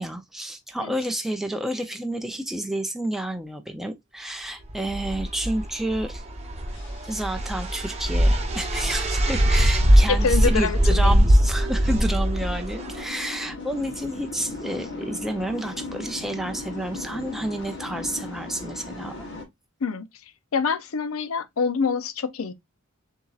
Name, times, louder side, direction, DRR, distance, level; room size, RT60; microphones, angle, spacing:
voice 1, 0.0-6.2 7.0-19.3, right 1 dB, ahead, 0.4 m, -30 dB
sound 1, 4.7-13.0, equal, 30° right, 0.8 m, -21 dB
sound 2, 5.0-19.4, left 2 dB, 60° left, 1.2 m, -39 dB
voice 2, 10.1-11.2 19.8-20.1 20.5-22.5, left 5 dB, 75° left, 0.6 m, -26 dB
6.9 x 2.8 x 2.4 m
head